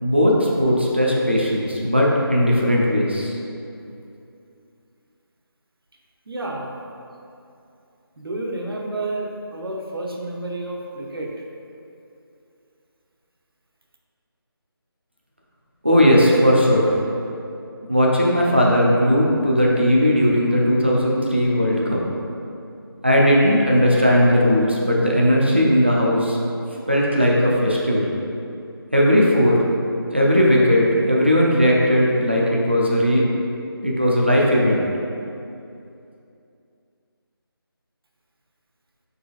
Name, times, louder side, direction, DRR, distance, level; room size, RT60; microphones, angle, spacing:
voice 1, 0.0-3.4 15.8-16.9 17.9-22.0 23.0-26.4 26.9-28.1 28.9-29.6 30.1-33.2 33.8-34.9, equal, 25° right, -3 dB, 0.4 m, -17 dB
voice 2, 6.3-6.8 8.2-11.3, right 2 dB, 65° right, -1 dB, 0.7 m, -30 dB
4.8 x 3.8 x 2.3 m, 2.6 s
figure-of-eight pair, 180°, 13 cm